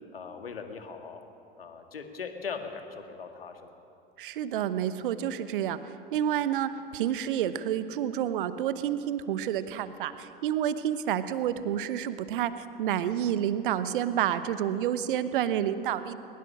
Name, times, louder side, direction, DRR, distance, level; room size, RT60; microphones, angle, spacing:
voice 1, 0.1-1.2 1.6-3.8, left 5 dB, 75° left, 6 dB, 1.8 m, -40 dB
voice 2, 4.2-16.2, right 10 dB, 60° right, 13 dB, 1.0 m, -29 dB
21.0 x 21.0 x 6.3 m, 2.7 s
figure-of-eight pair, 75°, 29 cm